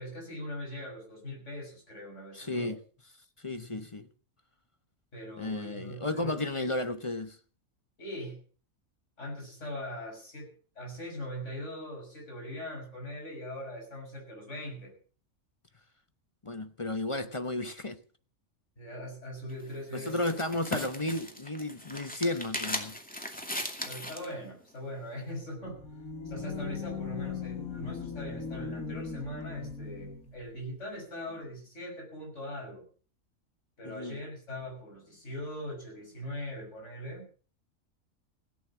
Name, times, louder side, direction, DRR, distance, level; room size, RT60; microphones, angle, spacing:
voice 1, 0.0-2.8 5.1-6.8 8.0-8.4 9.2-14.9 18.8-20.2 23.8-25.8 26.2-32.9 33.8-37.3, left 1 dB, 55° left, 6.8 m, -41 dB
voice 2, 2.3-2.8 3.4-4.1 5.4-7.4 16.4-18.0 19.9-23.0 33.8-34.2, left 2 dB, 25° left, 0.9 m, -33 dB
sound 1, 19.5-24.3, equal, 5° left, 2.4 m, -38 dB
sound 2, 25.6-30.4, left 5 dB, 85° left, 2.5 m, -38 dB
16.5 x 9.7 x 7.2 m
omnidirectional pair, 1.5 m